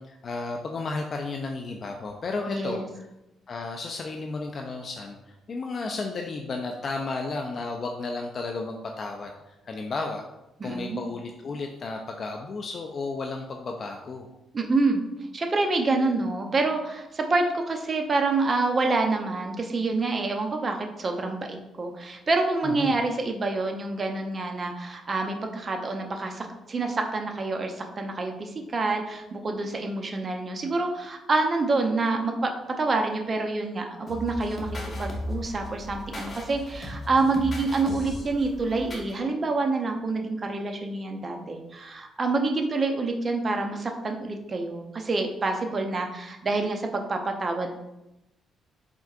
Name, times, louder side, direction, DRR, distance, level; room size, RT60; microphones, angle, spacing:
voice 1, 0.0-2.8 3.5-5.2 5.5-10.2 10.6-14.3 22.6-23.0, left 3 dB, 45° left, 2 dB, 0.4 m, -33 dB
voice 2, 2.5-2.9 10.6-11.0 14.5-15.0 15.3-47.7, right 3 dB, 35° right, 4 dB, 0.6 m, -27 dB
sound 1, 34.1-39.1, left 1 dB, 25° left, 0.9 m, -36 dB
4.4 x 3.5 x 2.4 m, 0.93 s
cardioid pair, 90°, 0 cm